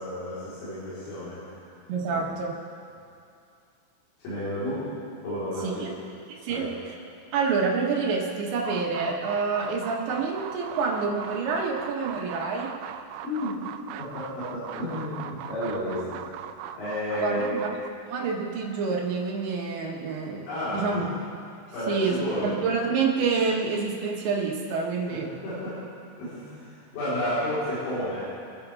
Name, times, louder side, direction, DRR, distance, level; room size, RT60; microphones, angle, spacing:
voice 1, 0.0-1.5 2.1-2.3 4.2-4.8 5.2-5.9 6.5-6.6 13.2-13.6 14.0-16.2 16.7-17.6 20.4-21.0 21.7-22.5 25.1-25.8 26.2-28.3, left 1 dB, 75° left, -13 dB, 6.7 m, -31 dB
voice 2, 1.9-2.5 5.6-5.9 6.4-6.7 7.3-12.7 17.2-17.7 18.1-20.5 20.7-21.0 21.9-25.3, right 4 dB, 65° right, -2 dB, 3.5 m, -27 dB
sound 1, 8.6-17.9, right 10 dB, 85° right, 2.7 m, -40 dB
26.5 x 10.5 x 3.5 m, 2.5 s
omnidirectional pair, 5.9 m